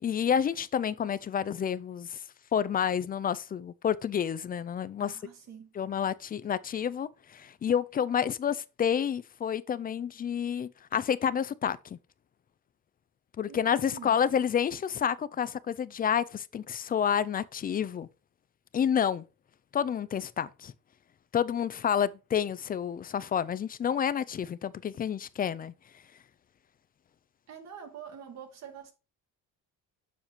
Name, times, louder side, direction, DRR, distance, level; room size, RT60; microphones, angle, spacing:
voice 1, 0.0-2.2 2.5-5.2 5.8-11.8 13.4-18.1 18.7-19.2 19.7-20.7 21.3-25.7, left 8 dB, 25° left, 0.4 m, -29 dB
voice 2, 5.0-5.8 13.5-14.2 27.5-28.9, right 7 dB, 50° right, 2.0 m, -46 dB
7.2 x 7.1 x 2.9 m
cardioid pair, 145°, 34 cm